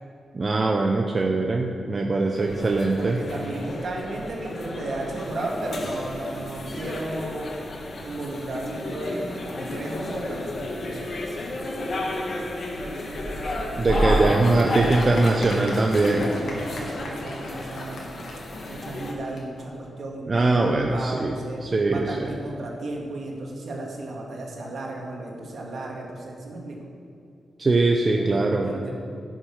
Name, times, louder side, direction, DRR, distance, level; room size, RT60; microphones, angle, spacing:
voice 1, 0.3-3.2 13.8-16.3 20.3-21.4 21.6-22.2 27.6-28.9, right 3 dB, 35° right, 2 dB, 0.7 m, -22 dB
sound 1, 2.3-19.1, left 1 dB, 55° left, 1.5 m, -31 dB
voice 2, 3.0-7.5 8.0-11.2 13.9-14.9 15.9-18.2 18.7-21.6 21.9-26.8 28.2-28.9, right 2 dB, 65° right, -1 dB, 2.1 m, -34 dB
Applause, 14.1-19.7, left 2 dB, 75° left, 1.9 m, -39 dB
11.0 x 6.5 x 6.1 m, 2.5 s
cardioid pair, 85°, 0 cm